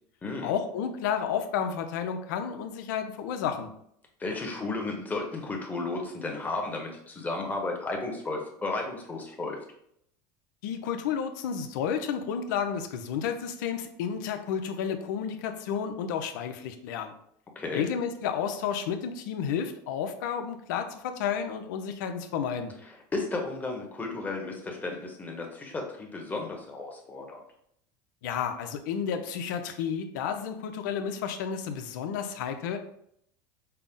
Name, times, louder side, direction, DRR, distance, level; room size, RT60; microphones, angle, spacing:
voice 1, 0.4-3.7 10.6-17.1 17.7-22.7 28.2-32.8, left 7 dB, 80° left, 7 dB, 0.5 m, -31 dB
voice 2, 4.2-9.6 17.5-17.9 22.9-27.4, left 3 dB, 15° left, 1 dB, 1.0 m, -33 dB
5.5 x 2.0 x 3.6 m, 0.70 s
supercardioid pair, 120°, 10 cm